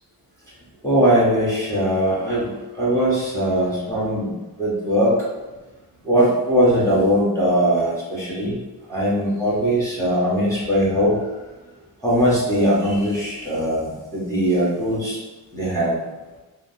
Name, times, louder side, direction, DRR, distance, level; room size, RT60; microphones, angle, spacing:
voice 1, 0.8-2.5 2.8-5.2 6.0-8.6 8.9-11.2 12.0-15.2 15.5-16.0, equal, 5° left, -7 dB, 0.9 m, -20 dB
3.2 x 2.0 x 2.6 m, 1.1 s
cardioid pair, 80°, 45 cm